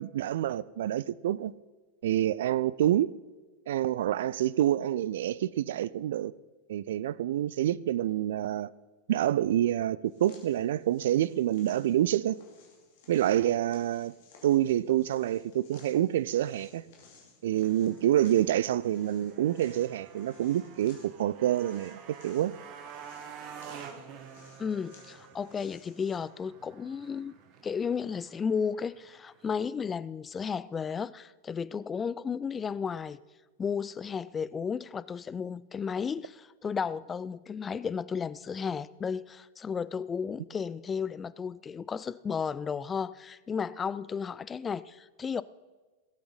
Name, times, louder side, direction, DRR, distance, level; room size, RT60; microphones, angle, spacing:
voice 1, 0.0-1.5 2.0-3.1 3.7-6.3 6.7-8.7 9.1-12.4 13.1-14.1 14.4-16.8 17.4-22.5, right 12 dB, 60° right, 0.3 m, -27 dB
sound 1, 10.0-26.2, left 4 dB, 55° left, 2.7 m, -59 dB
Motorcycle, 17.5-29.6, right 7 dB, 40° right, 1.1 m, -50 dB
voice 2, 24.6-27.3 27.6-33.2 33.6-45.4, left 6 dB, 20° left, 0.3 m, -33 dB
18.0 x 8.6 x 4.0 m
figure-of-eight pair, 90°, 0 cm